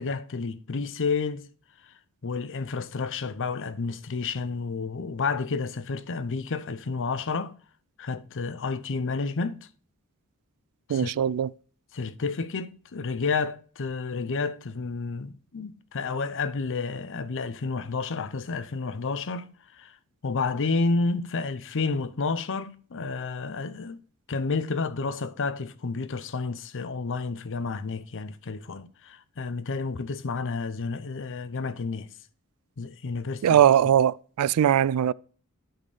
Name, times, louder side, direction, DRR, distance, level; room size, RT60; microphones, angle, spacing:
voice 1, 0.0-1.5 2.2-7.5 8.0-9.7 10.9-11.1 11.9-20.0 20.2-24.0 24.3-32.1 32.8-33.6, left 4 dB, 60° left, 0.7 m, -30 dB
voice 2, 10.9-11.5 33.4-35.1, right 10 dB, 75° right, 0.3 m, -21 dB
10.5 x 4.4 x 4.9 m
head